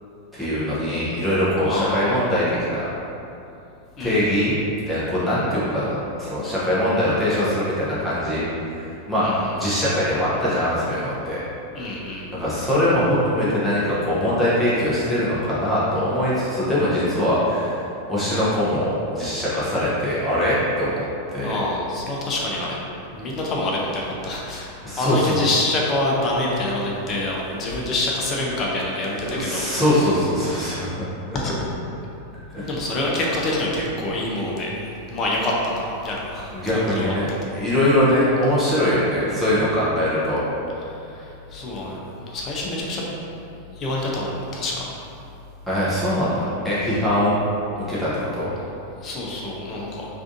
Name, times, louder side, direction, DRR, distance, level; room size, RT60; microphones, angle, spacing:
voice 1, 0.3-2.9 4.0-4.6 4.9-8.5 9.1-11.4 12.3-20.9 21.3-21.6 24.8-25.4 29.3-31.0 32.5-32.7 36.5-40.4 45.7-47.4 47.8-48.5, left 1 dB, ahead, -11 dB, 0.8 m, -22 dB
voice 2, 1.6-2.2 4.0-4.4 9.2-9.5 11.7-12.3 21.4-22.8 23.1-29.6 31.3-31.5 32.7-34.8 35.1-37.2 40.9-43.0 43.8-44.9 49.0-50.1, left 2 dB, 30° left, -3 dB, 0.6 m, -26 dB
3.4 x 2.5 x 2.5 m, 2.8 s
figure-of-eight pair, 90°, 0 cm